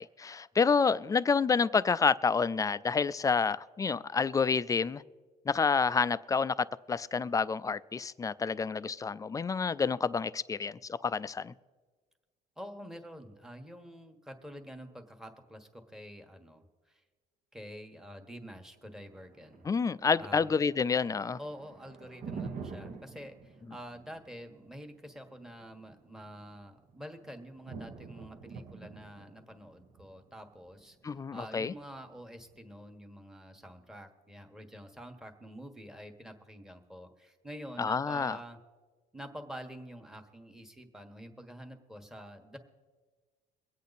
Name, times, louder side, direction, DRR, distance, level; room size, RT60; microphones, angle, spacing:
voice 1, 0.0-5.0 5.5-11.5 19.6-21.4 31.0-31.7 37.8-38.4, left 5 dB, 20° left, 0.3 m, -29 dB
voice 2, 12.6-17.0 17.5-19.7 20.2-20.5 21.4-38.6 39.1-42.6, equal, 5° right, 1.3 m, -47 dB
Thunder, 18.8-32.9, right 5 dB, 55° right, 1.2 m, -48 dB
23.0 x 8.4 x 4.1 m
cardioid pair, 110°, 17 cm